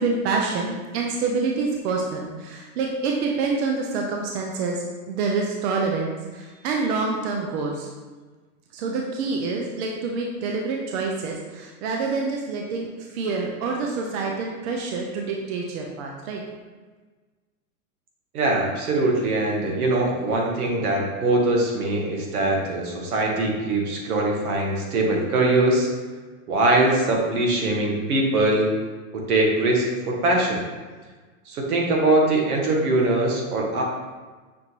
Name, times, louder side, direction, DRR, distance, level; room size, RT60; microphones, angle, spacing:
voice 1, 0.0-7.9 8.7-16.4, right 4 dB, 50° right, 0 dB, 0.6 m, -27 dB
voice 2, 18.3-25.9 26.5-28.7 29.1-30.6 31.5-33.8, right 2 dB, 80° right, -1 dB, 1.3 m, -22 dB
6.0 x 2.5 x 2.9 m, 1.3 s
supercardioid pair, 140°, 43 cm